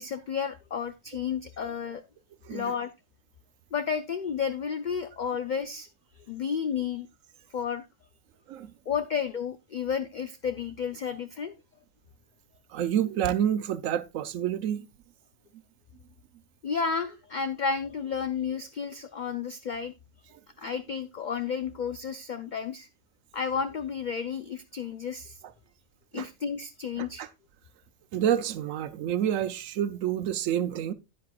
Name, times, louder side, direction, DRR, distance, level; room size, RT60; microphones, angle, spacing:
voice 1, 0.0-2.0 2.5-2.9 3.7-5.9 6.3-7.1 7.5-7.8 8.9-11.5 16.6-19.9 20.6-22.9 23.3-25.4 26.1-27.3, left 6 dB, 60° left, 0.5 m, -32 dB
voice 2, 2.4-2.7 8.5-8.7 12.7-14.9 26.1-26.3 27.0-27.3 28.1-30.9, right 10 dB, 80° right, 1.0 m, -28 dB
10.5 x 9.2 x 2.3 m
omnidirectional pair, 1.4 m